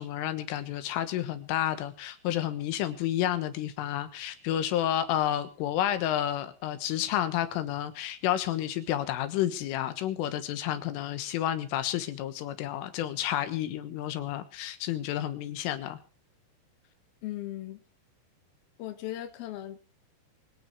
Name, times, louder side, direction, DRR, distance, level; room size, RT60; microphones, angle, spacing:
voice 1, 0.0-16.0, left 12 dB, 90° left, 10 dB, 3.9 m, -30 dB
voice 2, 17.2-17.8 18.8-19.8, left 13 dB, 60° left, 6 dB, 3.2 m, -37 dB
24.5 x 9.4 x 4.7 m, 0.36 s
omnidirectional pair, 5.5 m